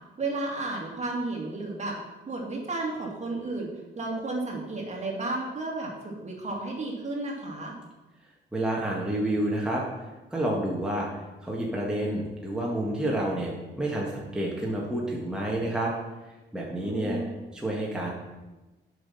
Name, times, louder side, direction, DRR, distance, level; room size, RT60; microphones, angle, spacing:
voice 1, 0.2-2.0 2.3-3.7 4.0-7.8 16.8-17.3, right 2 dB, 35° right, -1 dB, 2.4 m, -32 dB
voice 2, 8.5-9.8 10.3-11.1 11.4-15.9 16.5-17.2 17.5-18.1, right 1 dB, 5° right, -3 dB, 1.7 m, -29 dB
7.6 x 6.0 x 5.6 m, 1.1 s
cardioid pair, 90°, 20 cm